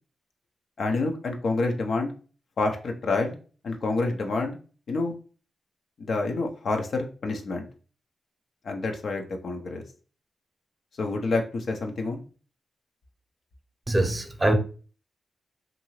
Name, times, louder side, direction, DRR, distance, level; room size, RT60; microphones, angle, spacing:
voice 1, 0.8-2.1 2.6-3.4 3.6-4.6 4.9-5.1 6.0-7.7 8.6-9.8 11.0-12.2, left 3 dB, 70° left, 0.6 m, -28 dB
voice 2, 13.9-14.5, right 1 dB, 20° right, 0.7 m, -23 dB
2.7 x 2.6 x 3.0 m
supercardioid pair, 40°, 0 cm